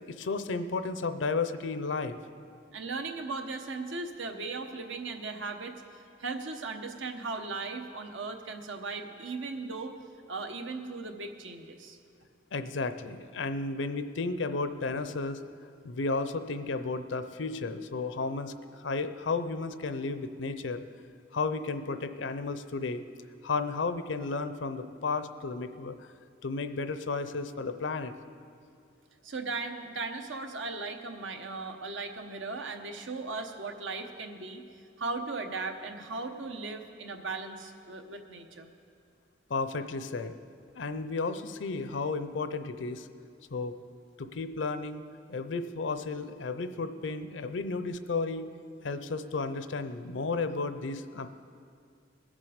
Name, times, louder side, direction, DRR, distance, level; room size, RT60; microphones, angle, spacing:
voice 1, 0.0-2.2 12.5-15.4 15.8-20.8 21.3-23.0 23.4-26.1 26.4-28.1 39.5-40.3 40.7-43.1 43.5-43.8 44.2-45.0 45.3-48.5 48.8-51.3, left 3 dB, 75° left, 10 dB, 0.6 m, -33 dB
voice 2, 2.7-10.0 10.3-12.0 29.2-34.6 35.0-38.7, right 3 dB, 90° right, 5 dB, 1.0 m, -37 dB
20.5 x 7.4 x 5.1 m, 2.3 s
head